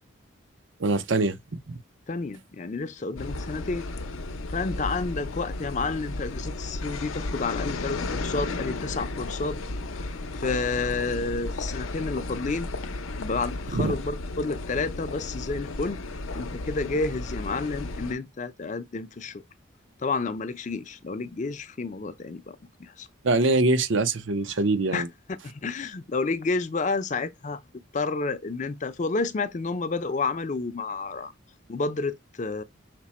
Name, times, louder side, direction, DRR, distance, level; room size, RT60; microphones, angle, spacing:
voice 1, 0.8-1.4 1.7-1.8 13.7-13.9 23.2-25.1, right 2 dB, 70° right, 0.7 m, -23 dB
voice 2, 2.1-3.9 4.5-9.6 9.9-12.7 13.2-16.0 16.4-19.4 20.0-23.1 24.9-27.6 27.9-31.3 31.7-32.6, left 3 dB, 35° left, 0.4 m, -30 dB
sound 1, 3.2-18.1, left 2 dB, 85° left, 0.6 m, -34 dB
5.9 x 2.1 x 4.2 m
head